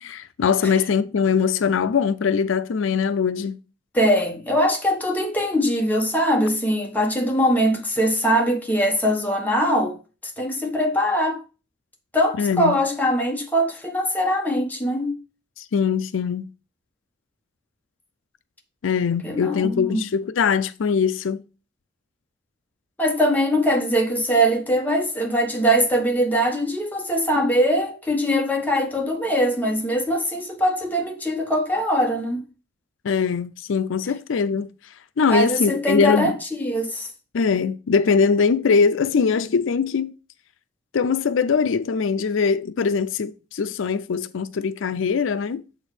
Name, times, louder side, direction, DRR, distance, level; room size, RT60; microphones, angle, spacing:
voice 1, 0.0-3.6 12.4-12.8 15.6-16.5 18.8-21.4 33.0-34.7 35.2-36.4 37.3-40.2 40.9-45.6, left 6 dB, 75° left, 0.4 m, -22 dB
voice 2, 3.9-10.0 10.2-11.4 12.1-15.2 19.2-20.0 23.0-32.4 35.3-37.1, equal, 10° left, 1.3 m, -22 dB
6.9 x 4.5 x 4.9 m
head